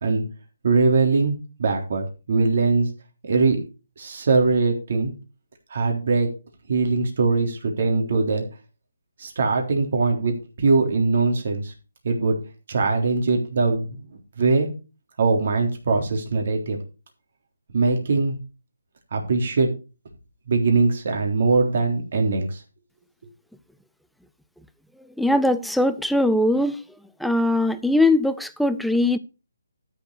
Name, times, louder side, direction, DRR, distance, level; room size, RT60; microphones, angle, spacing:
voice 1, 0.6-2.9 3.2-3.6 4.0-5.1 5.7-6.4 6.7-8.4 9.2-11.7 12.0-12.4 12.7-14.7 15.2-16.8 17.7-18.4 19.1-19.7 20.5-22.6, right 3 dB, 45° right, 3.6 m, -21 dB
voice 2, 25.0-26.8 27.2-29.2, left 1 dB, ahead, 0.4 m, -21 dB
13.0 x 7.1 x 4.7 m
hypercardioid pair, 170°, 0 cm